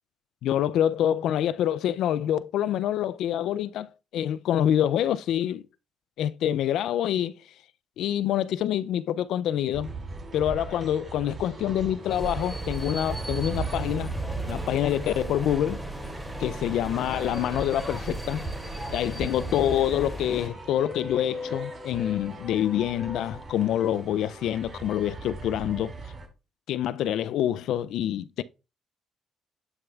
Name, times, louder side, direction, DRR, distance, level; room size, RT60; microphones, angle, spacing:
voice 1, 0.4-5.6 6.2-7.3 8.0-9.9 10.3-14.2 14.4-15.8 16.4-18.5 18.9-25.9 26.7-28.4, left 11 dB, 80° left, 0.3 m, -26 dB
sound 1, 9.7-26.3, right 4 dB, 40° right, 2.5 m, -38 dB
sound 2, 12.1-20.5, equal, ahead, 2.5 m, -37 dB
sound 3, 17.6-18.7 19.1-24.0, left 4 dB, 25° left, 0.6 m, -42 dB
10.5 x 6.4 x 2.3 m
cardioid pair, 90°, 0 cm